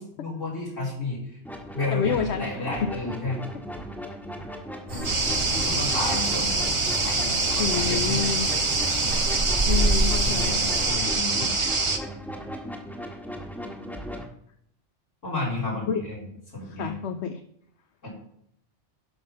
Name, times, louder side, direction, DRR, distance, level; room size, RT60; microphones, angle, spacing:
voice 1, 0.2-1.4 1.7-3.4 5.5-6.7 7.0-8.3 10.2-11.7 15.2-16.2 16.5-16.9 18.0-18.1, left 2 dB, 85° left, -5 dB, 4.0 m, -32 dB
sound 1, 1.4-14.2, equal, ahead, 1.5 m, -37 dB
voice 2, 1.9-2.9 4.9-5.1 7.6-8.5 9.7-10.6 15.9-16.0 16.6-17.4, left 7 dB, 70° left, 7 dB, 0.9 m, -29 dB
sound 2, 4.9-10.9, right 1 dB, 75° right, 2.9 m, -29 dB
sound 3, 5.0-12.0, right 3 dB, 30° right, 0.8 m, -25 dB
12.0 x 5.6 x 5.5 m, 0.70 s
omnidirectional pair, 1.2 m